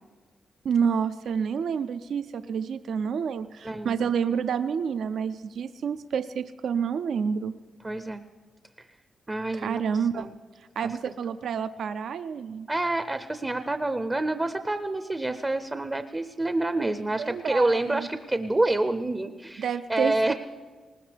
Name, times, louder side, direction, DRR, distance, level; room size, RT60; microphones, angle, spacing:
voice 1, 0.6-7.6 9.5-10.3 10.8-12.7 17.2-18.1 19.6-20.3, right 7 dB, 70° right, 12 dB, 0.4 m, -28 dB
voice 2, 3.6-4.1 7.8-8.2 9.3-9.8 10.1-10.3 10.8-11.1 12.7-20.3, right 2 dB, 15° right, 9 dB, 0.5 m, -28 dB
20.0 x 19.5 x 3.4 m, 1.4 s
wide cardioid pair, 145°, 0 cm